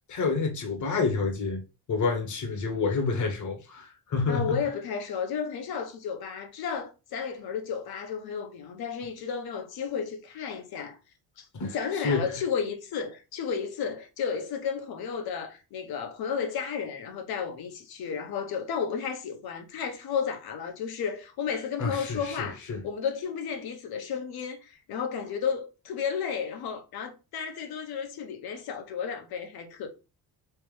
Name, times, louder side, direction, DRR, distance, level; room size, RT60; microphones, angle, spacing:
voice 1, 0.1-1.6 1.9-4.6 11.5-11.7 12.0-12.3 21.8-22.8, left 4 dB, 50° left, 1.2 m, -28 dB
voice 2, 4.3-11.0 11.4-22.6 22.8-29.9, left 6 dB, 65° left, 1.0 m, -33 dB
3.3 x 2.9 x 3.2 m
cardioid pair, 130°, 39 cm